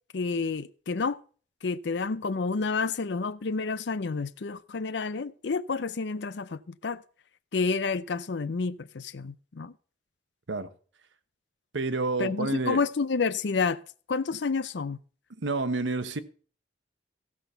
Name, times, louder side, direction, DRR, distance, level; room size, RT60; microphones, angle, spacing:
voice 1, 0.1-1.2 1.6-7.0 7.5-9.7 12.2-13.8 14.1-15.0, left 4 dB, 75° left, 0.5 m, -29 dB
voice 2, 11.7-12.8 15.4-16.2, right 3 dB, 90° right, 1.1 m, -29 dB
15.0 x 6.0 x 6.8 m
head